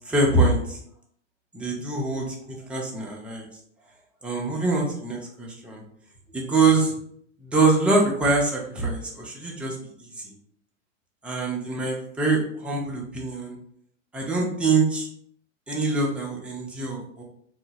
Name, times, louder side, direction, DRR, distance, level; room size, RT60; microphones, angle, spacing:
voice 1, 0.1-0.8 1.5-3.5 4.2-5.8 6.3-6.9 7.4-9.8 10.1-10.3 11.2-13.6 14.1-15.1 15.7-17.2, right 3 dB, 5° right, -2 dB, 0.4 m, -24 dB
2.8 x 2.4 x 2.7 m, 0.66 s
figure-of-eight pair, 95°, 37 cm